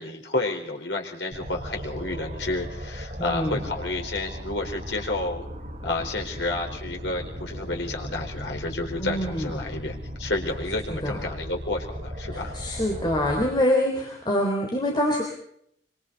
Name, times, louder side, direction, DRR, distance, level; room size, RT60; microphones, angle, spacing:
voice 1, 0.0-5.5 5.8-12.5, left 2 dB, 90° left, 2 dB, 4.4 m, -30 dB
sound 1, 1.3-13.5, equal, 40° right, 5.7 m, -37 dB
voice 2, 3.2-3.6 9.0-9.5 10.9-11.2 12.3-15.2, left 1 dB, 25° left, 0 dB, 3.8 m, -25 dB
25.5 x 25.0 x 4.1 m, 0.69 s
head